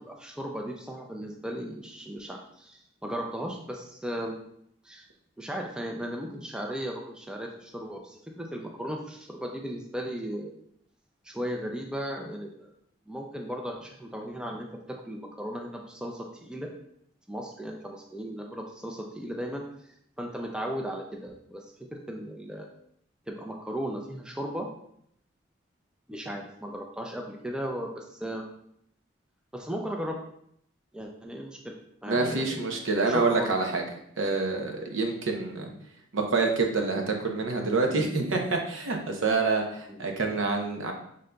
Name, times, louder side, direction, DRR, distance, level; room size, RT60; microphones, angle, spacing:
voice 1, 0.0-4.3 4.8-5.0 5.4-10.5 11.2-12.7 13.1-14.7 15.0-16.7 17.3-19.9 20.2-22.7 23.3-24.7 26.1-28.4 29.5-30.2 30.9-31.7 32.0-32.6 33.0-33.5 35.7-35.8 39.9-40.1, equal, 5° right, 1 dB, 0.3 m, -36 dB
voice 2, 32.1-33.8 34.2-35.7 36.1-40.9, right 3 dB, 80° right, 3 dB, 0.7 m, -27 dB
5.1 x 3.6 x 2.2 m, 0.71 s
head